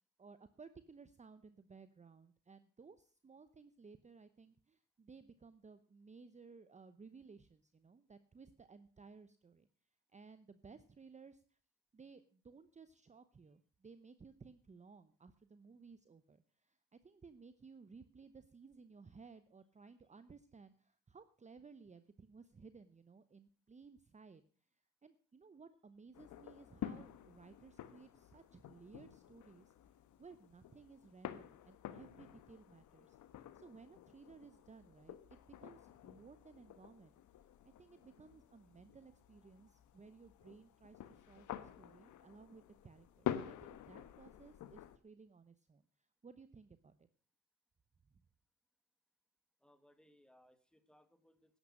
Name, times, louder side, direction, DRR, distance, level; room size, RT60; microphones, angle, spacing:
voice 1, 0.2-9.7 10.1-11.4 11.9-16.8 17.0-24.4 25.0-29.7 30.2-33.2 33.5-37.2 37.6-45.8 46.2-46.9, right 5 dB, 25° right, 12 dB, 0.8 m, -58 dB
sound 1, 26.1-45.0, left 11 dB, 75° left, 1.2 m, -49 dB
voice 2, 49.6-51.6, equal, 5° left, 10 dB, 1.7 m, -68 dB
11.5 x 10.0 x 6.3 m, 0.42 s
cardioid pair, 90°, 30 cm